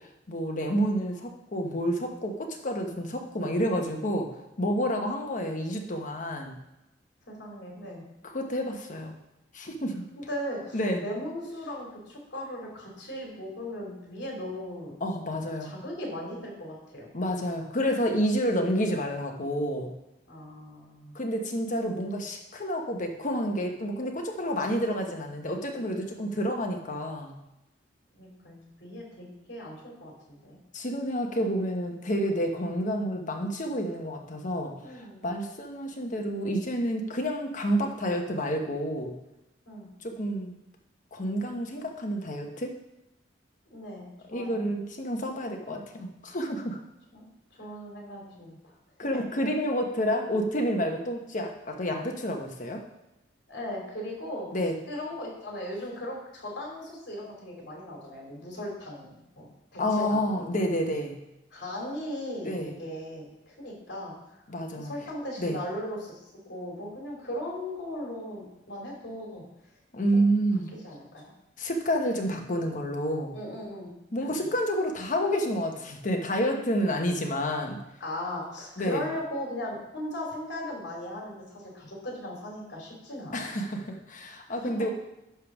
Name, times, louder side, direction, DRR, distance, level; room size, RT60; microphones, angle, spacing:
voice 1, 0.3-4.3 4.6-6.6 8.2-9.1 9.5-10.0 10.7-11.0 15.0-15.7 17.1-19.9 21.1-27.3 30.7-34.7 35.2-39.1 40.0-40.5 41.1-42.7 44.3-46.8 49.0-52.8 54.5-54.7 59.8-61.2 62.4-62.7 64.5-64.9 65.4-65.6 69.9-70.7 71.6-73.3 74.1-77.8 78.8-79.0 83.3-84.9, equal, 45° left, 3 dB, 1.1 m, -29 dB
voice 2, 7.3-8.0 10.2-14.9 15.6-17.1 20.3-21.1 28.1-30.6 34.8-35.3 39.7-39.9 43.7-44.7 47.1-47.3 47.6-48.7 53.5-54.5 54.9-59.5 59.7-60.6 61.5-64.4 64.8-66.2 66.4-69.4 70.1-70.3 70.8-71.3 73.3-73.9 78.0-83.5 84.5-84.7, left 1 dB, 70° left, -2 dB, 2.9 m, -38 dB
10.5 x 3.5 x 6.0 m, 0.91 s
head